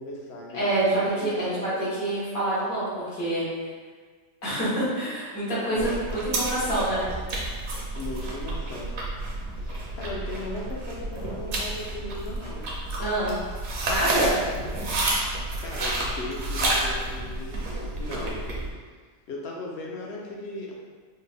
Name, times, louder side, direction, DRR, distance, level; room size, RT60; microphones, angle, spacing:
voice 1, 0.0-0.6 1.2-1.9 5.7-6.1 8.0-8.9 9.6-12.7 14.1-14.3 15.1-15.2 15.6-17.6 17.9-18.4 19.3-20.8, left 2 dB, 60° left, -2 dB, 0.8 m, -37 dB
voice 2, 0.5-3.4 4.4-7.0 13.0-13.4 13.8-14.3, right 1 dB, 80° left, -9 dB, 1.8 m, -26 dB
sound 1, 5.8-18.7, right 1 dB, 55° right, 0.9 m, -30 dB
4.2 x 2.0 x 3.4 m, 1.5 s
omnidirectional pair, 1.4 m